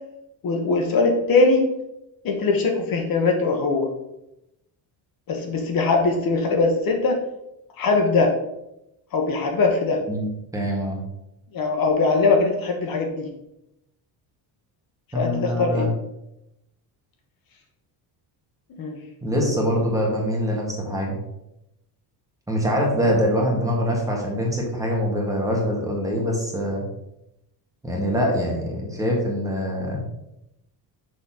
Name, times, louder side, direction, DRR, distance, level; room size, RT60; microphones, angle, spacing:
voice 1, 0.4-1.6 2.2-3.9 5.3-7.2 7.8-8.3 9.1-10.0 11.5-13.3 15.1-15.9 18.8-19.0, left 3 dB, 50° left, 3 dB, 1.3 m, -21 dB
voice 2, 10.5-11.0 15.1-15.9 19.2-21.2 22.5-26.8 27.8-30.0, equal, 5° right, -2 dB, 1.7 m, -24 dB
6.4 x 4.2 x 5.7 m, 0.86 s
cardioid pair, 150°, 45 cm